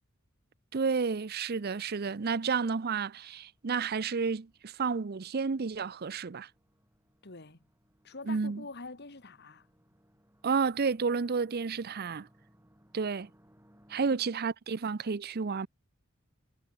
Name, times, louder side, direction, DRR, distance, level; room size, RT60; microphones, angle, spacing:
voice 1, 0.7-6.5 8.3-8.6 10.4-12.3 12.9-13.3 13.9-15.7, right 5 dB, 50° right, 0.6 m, -31 dB
sound 1, 1.4-14.1, equal, 10° right, 7.0 m, -67 dB
voice 2, 7.2-7.6 8.0-9.7 14.1-14.2, left 3 dB, 50° left, 2.1 m, -45 dB
head